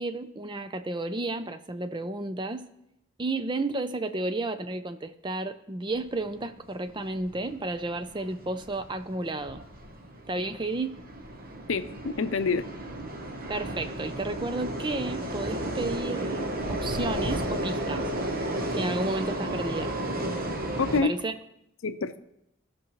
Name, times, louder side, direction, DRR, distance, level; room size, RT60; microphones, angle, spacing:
voice 1, 0.0-2.6 3.2-9.6 10.3-11.0 13.5-16.4 16.7-18.1 18.7-19.9 20.9-21.4, right 2 dB, 20° right, 10 dB, 0.5 m, -32 dB
sound 1, 5.9-21.0, right 1 dB, 45° right, 1.1 m, -33 dB
voice 2, 11.7-12.6 20.8-21.2 21.8-22.2, left 4 dB, 70° left, 11 dB, 0.6 m, -27 dB
16.5 x 6.0 x 3.2 m, 0.83 s
head